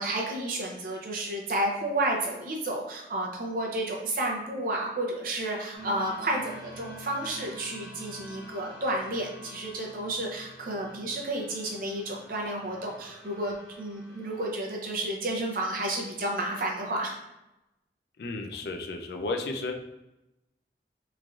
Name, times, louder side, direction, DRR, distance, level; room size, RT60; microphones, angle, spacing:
voice 1, 0.0-17.1, right 1 dB, 50° right, -1 dB, 0.5 m, -31 dB
sound 1, 5.7-14.5, equal, 50° left, 0.9 m, -47 dB
voice 2, 18.2-19.7, left 3 dB, 65° left, 4 dB, 0.4 m, -33 dB
3.1 x 2.5 x 2.4 m, 0.93 s
head